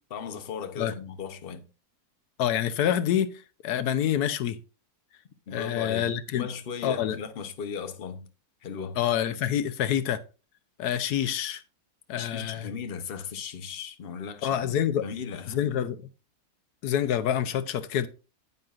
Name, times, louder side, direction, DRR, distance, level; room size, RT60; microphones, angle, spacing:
voice 1, 0.1-1.7 5.5-6.1 6.3-8.3 8.6-9.0 12.1-14.7 15.0-15.6, left 6 dB, 45° left, 1.0 m, -37 dB
voice 2, 2.4-4.6 5.5-6.5 6.8-7.2 9.0-10.2 10.8-11.6 12.1-12.7 14.4-15.1 15.5-16.1 16.8-18.1, left 10 dB, 85° left, 1.3 m, -27 dB
9.6 x 9.1 x 2.5 m
omnidirectional pair, 1.6 m